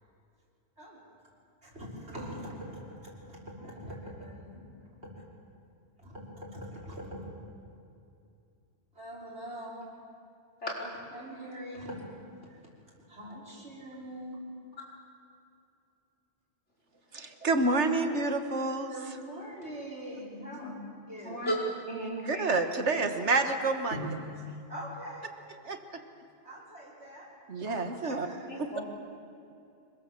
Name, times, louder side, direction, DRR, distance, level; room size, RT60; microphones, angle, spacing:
voice 1, 1.6-4.7 5.0-5.2 6.0-7.2 8.9-9.8 10.8-12.0 12.4-12.6 13.1-14.4 18.9-20.7 21.1-21.4 23.9-24.1 24.4-25.3 26.4-27.3 27.6-27.7 28.0-28.6, equal, 70° right, -4 dB, 6.1 m, -43 dB
voice 2, 17.1-18.9 22.3-24.0 25.7-26.0 27.5-28.3, right 3 dB, 85° right, 6 dB, 1.9 m, -28 dB
voice 3, 21.9-22.5 27.6-27.8 28.4-28.8, equal, 90° left, -3 dB, 5.4 m, -35 dB
26.0 x 22.5 x 7.5 m, 2.6 s
omnidirectional pair, 1.2 m